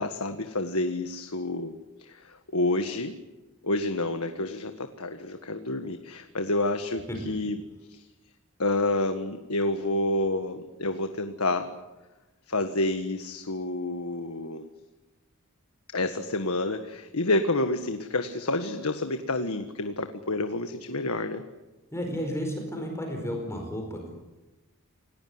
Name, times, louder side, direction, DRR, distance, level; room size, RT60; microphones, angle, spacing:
voice 1, 0.0-3.1 3.6-7.6 7.9-8.1 8.6-11.7 12.5-14.7 15.9-21.4, left 2 dB, 75° left, 7 dB, 1.6 m, -29 dB
voice 2, 21.9-24.1, equal, 15° left, 2 dB, 4.8 m, -33 dB
29.0 x 18.5 x 9.6 m, 1.1 s
head